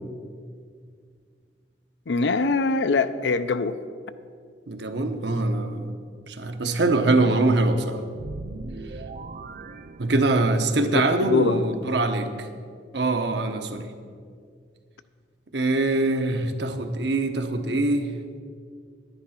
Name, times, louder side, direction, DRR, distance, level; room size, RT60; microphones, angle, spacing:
voice 1, 2.1-3.8 11.2-11.6, left 4 dB, 75° left, 12 dB, 0.5 m, -23 dB
voice 2, 4.7-5.9 6.3-8.0 10.0-12.5 12.9-13.9 15.5-18.1, right 2 dB, 70° right, 6 dB, 1.0 m, -23 dB
sound 1, 8.1-10.7, right 3 dB, 50° right, 0.5 m, -39 dB
10.5 x 10.5 x 5.8 m, 2.1 s
head